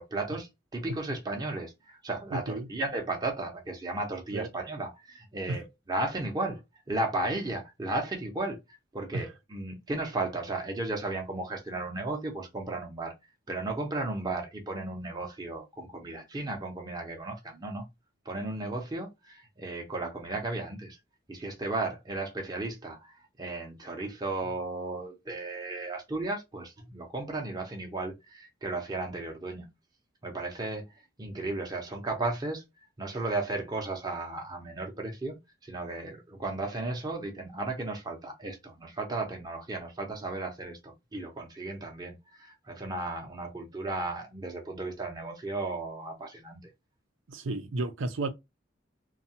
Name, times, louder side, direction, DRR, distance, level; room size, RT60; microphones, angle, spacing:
voice 1, 0.0-5.6 5.9-6.6 6.9-8.6 8.9-13.1 13.5-17.9 18.3-21.0 21.3-29.7 30.2-30.9 31.2-32.6 33.0-46.6, right 2 dB, 20° right, 0.6 m, -35 dB
voice 2, 2.3-2.7 4.3-4.5 5.5-5.6 9.1-9.3 47.3-48.3, right 2 dB, 90° right, 0.6 m, -32 dB
2.7 x 2.3 x 2.7 m
head